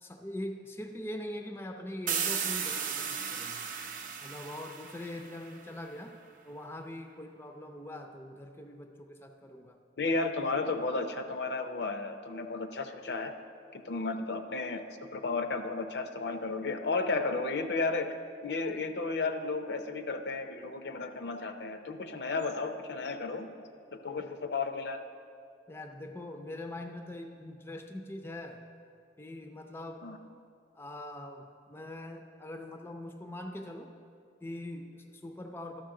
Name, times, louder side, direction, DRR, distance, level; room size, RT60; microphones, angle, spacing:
voice 1, 0.0-3.6 4.2-6.2 6.4-9.8 24.1-24.3 25.7-28.6 29.2-30.0 30.7-33.9 34.4-35.8, left 1 dB, 15° left, 5 dB, 0.4 m, -42 dB
sound 1, 2.1-5.7, right 7 dB, 50° right, 0.6 m, -35 dB
voice 2, 10.0-13.3 13.7-18.2 18.4-25.0 30.0-30.2, left 3 dB, 70° left, 7 dB, 0.6 m, -33 dB
12.5 x 6.5 x 3.7 m, 2.3 s
head